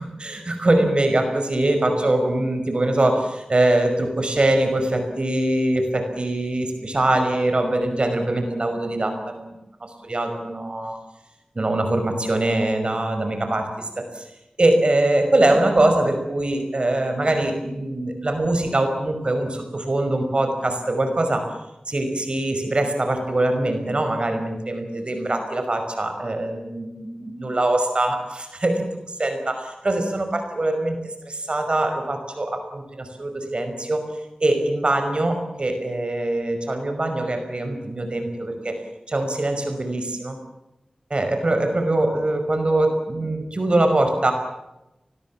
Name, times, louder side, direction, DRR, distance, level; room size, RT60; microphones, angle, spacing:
voice 1, 0.0-9.5 9.8-11.0 11.6-14.3 14.6-21.5 21.9-34.0 34.4-38.8 39.1-40.4 41.1-44.3, right 1 dB, 50° right, 6 dB, 5.4 m, -23 dB
30.0 x 20.5 x 7.3 m, 0.94 s
wide cardioid pair, 75°, 2 cm